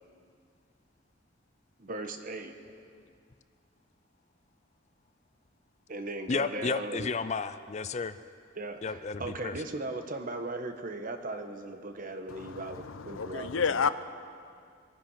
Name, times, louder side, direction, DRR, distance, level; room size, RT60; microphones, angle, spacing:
voice 1, 1.8-2.6 5.9-7.1 8.6-13.6, right 2 dB, 45° right, 7 dB, 1.2 m, -38 dB
voice 2, 6.3-8.2 8.8-9.5, left 4 dB, 35° left, 13 dB, 0.4 m, -32 dB
voice 3, 12.3-13.9, left 6 dB, 85° left, 13 dB, 0.6 m, -30 dB
24.0 x 10.5 x 5.8 m, 2.2 s
head